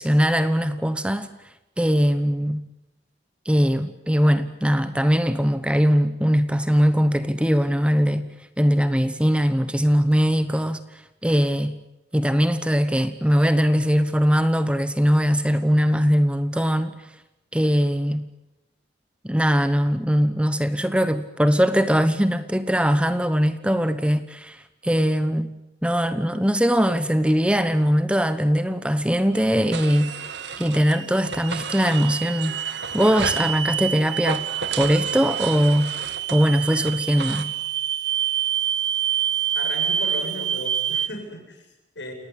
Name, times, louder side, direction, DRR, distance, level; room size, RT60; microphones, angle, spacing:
voice 1, 0.0-1.3 1.8-2.6 3.4-8.3 8.6-10.8 11.2-11.8 12.1-16.9 17.5-18.3 19.2-25.5 25.8-30.3 30.6-32.6 32.9-34.4 34.8-35.9 36.3-37.5, equal, 5° right, 11 dB, 1.0 m, -21 dB
sound 1, 29.4-41.1, right 10 dB, 90° right, 1.1 m, -28 dB
sound 2, 29.7-31.0 31.2-33.5 34.2-37.4, right 4 dB, 70° right, 2.1 m, -33 dB
voice 2, 39.6-42.1, left 1 dB, 80° left, 4 dB, 7.7 m, -36 dB
29.0 x 18.0 x 9.9 m, 0.96 s
head